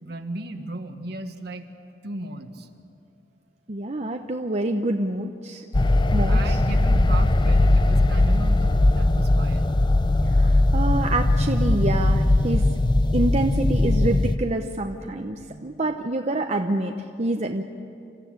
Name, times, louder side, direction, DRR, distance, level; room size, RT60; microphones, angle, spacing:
voice 1, 0.0-1.7 2.0-2.7 6.3-9.7, right 2 dB, 65° right, 6 dB, 1.6 m, -35 dB
voice 2, 3.7-5.6 6.1-6.6 10.3-12.8 13.1-17.6, right 2 dB, 40° right, 4 dB, 0.8 m, -27 dB
sound 1, 5.7-14.4, left 2 dB, 25° left, 0.6 m, -19 dB
28.0 x 14.5 x 8.9 m, 2.5 s
head